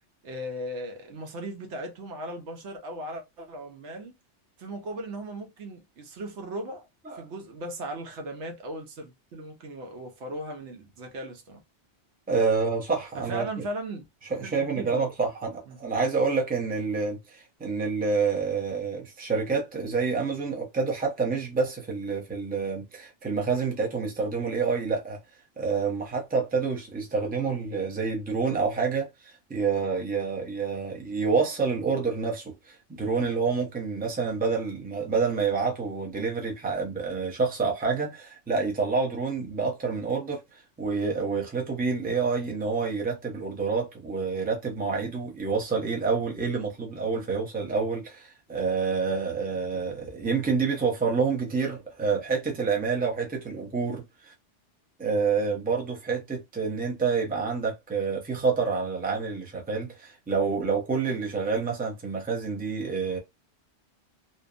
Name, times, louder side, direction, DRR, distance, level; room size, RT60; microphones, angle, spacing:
voice 1, 0.2-4.1 4.6-6.9 7.1-11.6 13.1-14.1 14.4-15.0 15.7-15.8, right 1 dB, 70° right, 1.0 m, -37 dB
voice 2, 12.3-13.6 14.3-25.2 25.6-54.3 55.0-63.2, right 4 dB, 10° right, 0.5 m, -28 dB
2.8 x 2.1 x 2.4 m
omnidirectional pair, 1.2 m